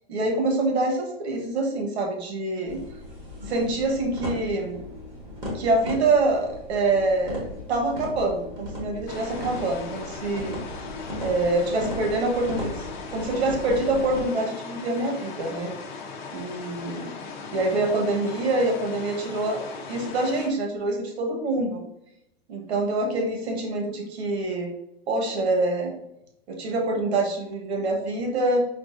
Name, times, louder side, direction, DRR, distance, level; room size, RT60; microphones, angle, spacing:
voice 1, 0.1-2.8 3.5-4.8 5.5-10.5 11.2-15.7 16.3-17.1 17.5-19.6 19.9-21.8 22.5-24.7 25.1-25.9 26.5-28.7, right 2 dB, 85° right, 2 dB, 1.1 m, -25 dB
sound 1, 2.7-14.2, left 1 dB, 15° right, 0.7 m, -36 dB
sound 2, 9.1-20.5, left 4 dB, 45° left, 0.6 m, -38 dB
4.6 x 2.4 x 2.5 m, 0.80 s
supercardioid pair, 175°, 32 cm